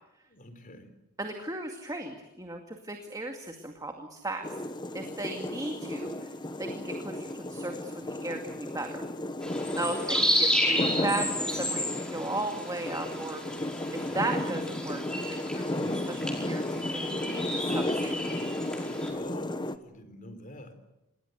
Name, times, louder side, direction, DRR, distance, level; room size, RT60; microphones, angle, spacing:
voice 1, 0.3-0.9 9.8-10.0 19.1-20.8, left 1 dB, 35° left, 8 dB, 4.0 m, -46 dB
voice 2, 1.2-4.5 4.9-6.3 6.6-9.0 9.7-13.4 13.9-15.0 15.3-18.4, right 2 dB, 15° right, 4 dB, 2.2 m, -36 dB
sound 1, 4.4-19.8, left 1 dB, 20° left, 1.2 m, -34 dB
sound 2, 9.4-19.1, equal, 5° left, 5.2 m, -32 dB
27.0 x 21.0 x 8.2 m, 0.95 s
head